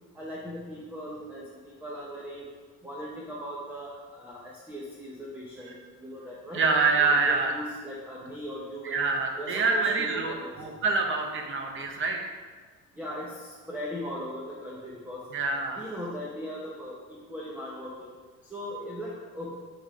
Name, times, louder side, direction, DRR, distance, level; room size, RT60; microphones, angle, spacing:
voice 1, 0.1-2.5 2.8-6.6 7.0-9.1 9.4-10.8 13.0-15.2 15.8-18.1 18.5-19.5, equal, 5° right, -6 dB, 0.9 m, -39 dB
voice 2, 6.5-7.5 8.8-12.4 15.3-15.8, right 4 dB, 40° right, 2 dB, 0.8 m, -26 dB
7.8 x 3.7 x 4.9 m, 1.5 s
cardioid pair, 150°, 31 cm